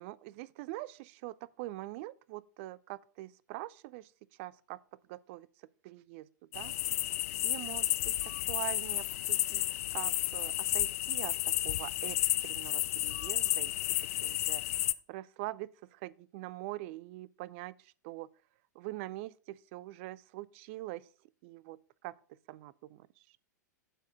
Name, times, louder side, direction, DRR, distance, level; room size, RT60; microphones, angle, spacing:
voice 1, 0.0-4.1 4.4-4.8 5.1-5.5 5.8-6.3 6.5-6.7 7.3-8.1 8.5-9.6 9.9-11.3 11.6-12.2 12.4-13.7 14.2-18.3 18.7-21.1 21.4-21.8 22.0-22.1 22.5-23.1, right 17 dB, 40° right, 0.4 m, -43 dB
sound 1, 6.5-14.9, left 16 dB, 50° left, 0.4 m, -32 dB
7.8 x 4.8 x 6.2 m
figure-of-eight pair, 100°, 10 cm